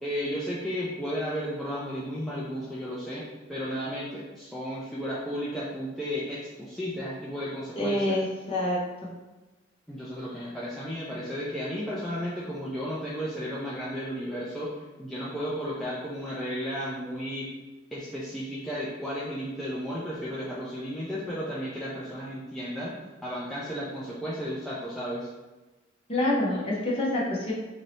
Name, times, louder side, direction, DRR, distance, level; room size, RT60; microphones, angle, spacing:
voice 1, 0.0-3.2 3.5-8.2 9.9-17.5 17.9-22.9 23.2-25.3, equal, ahead, -8 dB, 0.4 m, -33 dB
voice 2, 7.8-9.1 26.1-27.5, left 1 dB, 30° left, -6 dB, 0.9 m, -27 dB
3.9 x 2.7 x 3.2 m, 1.1 s
head